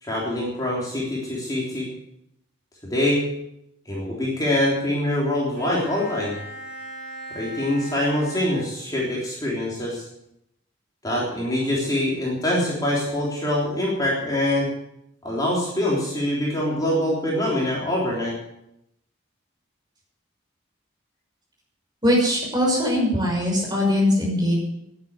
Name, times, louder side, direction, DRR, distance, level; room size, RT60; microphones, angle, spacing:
voice 1, 0.0-1.9 2.9-3.2 3.9-6.3 7.3-10.1 11.0-14.7 15.2-18.3, left 1 dB, 20° left, -5 dB, 3.4 m, -24 dB
Bowed string instrument, 5.6-9.2, right 1 dB, 45° right, 4.0 m, -39 dB
voice 2, 22.0-24.6, left 1 dB, 20° right, -2 dB, 6.3 m, -21 dB
12.0 x 10.5 x 8.1 m, 0.80 s
head